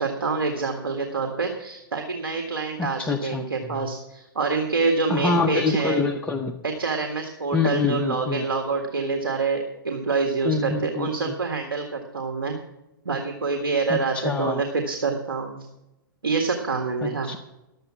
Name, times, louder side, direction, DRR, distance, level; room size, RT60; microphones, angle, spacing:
voice 1, 0.0-6.1 6.6-12.6 13.1-15.7 16.2-17.3, right 4 dB, 90° right, 3 dB, 1.8 m, -26 dB
voice 2, 2.8-3.4 5.1-6.6 7.5-8.4 10.4-11.3 13.9-14.6 17.0-17.4, left 4 dB, 10° left, 3 dB, 0.7 m, -26 dB
12.0 x 7.9 x 7.3 m, 0.93 s
hypercardioid pair, 130°, 12 cm